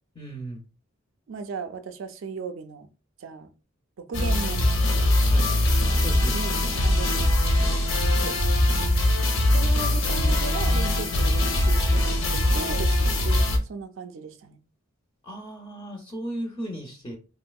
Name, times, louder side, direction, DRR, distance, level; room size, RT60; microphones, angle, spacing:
voice 1, 0.2-0.6 5.3-5.5 6.0-6.4 8.2-8.4 15.2-17.2, right 1 dB, 20° left, 0.5 m, -35 dB
voice 2, 1.3-2.9 3.2-3.5 4.0-4.6 5.0-5.2 6.3-7.5 9.5-14.6, right 5 dB, 70° right, 0.4 m, -37 dB
sound 1, 4.1-13.6, left 1 dB, 80° left, 0.7 m, -22 dB
3.0 x 2.7 x 2.3 m
head